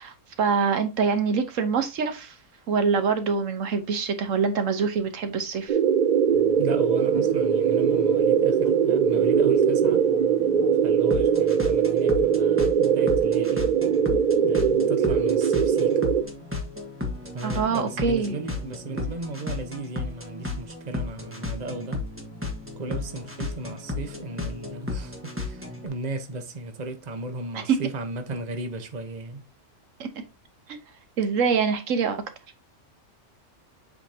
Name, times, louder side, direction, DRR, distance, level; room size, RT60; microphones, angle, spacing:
voice 1, 0.0-2.3 2.7-5.8 17.4-18.4 27.5-27.8 30.0-30.1 30.7-30.8 31.2-32.2, right 5 dB, 80° right, 1.3 m, -25 dB
sound 1, 5.7-16.2, right 7 dB, 60° right, 0.5 m, -21 dB
sound 2, 6.3-25.9, left 3 dB, 10° right, 1.3 m, -35 dB
voice 2, 6.6-10.0 10.8-13.7 14.4-16.0 17.3-22.0 22.8-29.4, right 2 dB, 35° right, 1.0 m, -35 dB
7.7 x 5.2 x 2.8 m
omnidirectional pair, 1.3 m